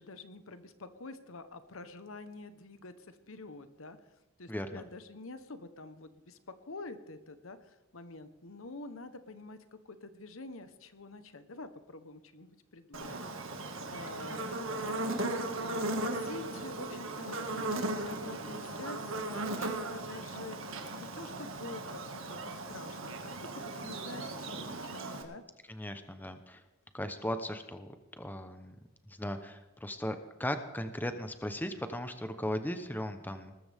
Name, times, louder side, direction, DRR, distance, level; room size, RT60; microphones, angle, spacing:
voice 1, 0.0-4.0 4.4-6.4 6.6-15.0 15.6-20.6 21.0-22.0 22.3-25.4, left 3 dB, 70° left, 11 dB, 1.1 m, -47 dB
voice 2, 4.5-4.8 25.7-26.6 26.9-27.9 28.2-28.8 29.2-33.5, left 1 dB, 10° left, 8 dB, 0.9 m, -37 dB
Buzz, 12.9-25.2, right 2 dB, 65° right, 2.0 m, -37 dB
20.0 x 14.0 x 3.6 m, 1.1 s
head